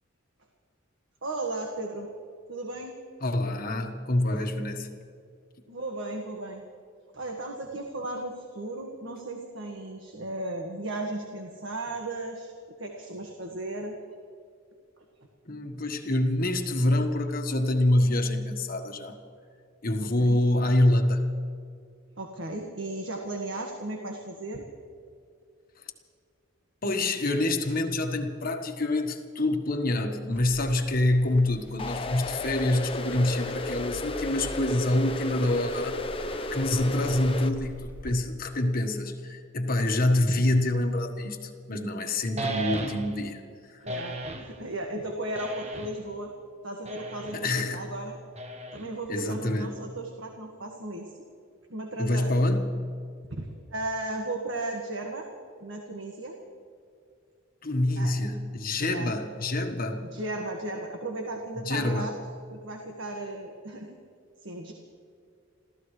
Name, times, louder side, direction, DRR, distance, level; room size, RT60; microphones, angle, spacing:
voice 1, 1.2-2.1 2.5-2.9 5.7-6.6 7.1-12.5 12.8-14.0 20.0-20.4 22.2-24.6 43.8-46.3 46.6-48.2 48.7-51.1 51.7-52.5 53.3-55.3 55.6-56.4 58.0-58.2 58.8-59.1 60.0-62.1 62.5-63.9 64.4-64.7, right 2 dB, 65° right, 1 dB, 1.7 m, -35 dB
voice 2, 3.2-4.9 15.5-19.2 19.8-21.2 26.8-36.0 36.5-43.4 43.7-43.8 47.3-47.9 49.1-49.8 52.0-52.8 57.6-60.0 61.6-62.1, left 1 dB, 45° left, 4 dB, 1.4 m, -26 dB
Crackle, 30.3-38.1, equal, 10° right, 4.7 m, -45 dB
sound 1, 31.8-37.5, left 2 dB, 25° left, 0.7 m, -34 dB
sound 2, 42.4-43.3 43.9-44.5 45.3-46.1 46.8-47.5 48.4-49.1, right 2 dB, 30° right, 1.2 m, -35 dB
28.5 x 15.0 x 3.3 m, 2.4 s
head